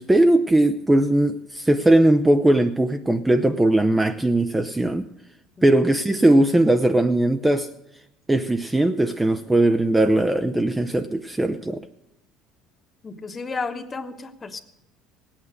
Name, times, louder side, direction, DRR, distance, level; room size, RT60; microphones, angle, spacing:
voice 1, 0.0-5.1 5.6-7.7 8.3-11.8, right 1 dB, 10° right, 9 dB, 0.5 m, -19 dB
voice 2, 13.0-14.6, left 4 dB, 20° left, 8 dB, 1.1 m, -32 dB
18.0 x 8.9 x 6.5 m, 0.86 s
cardioid pair, 125°, 0 cm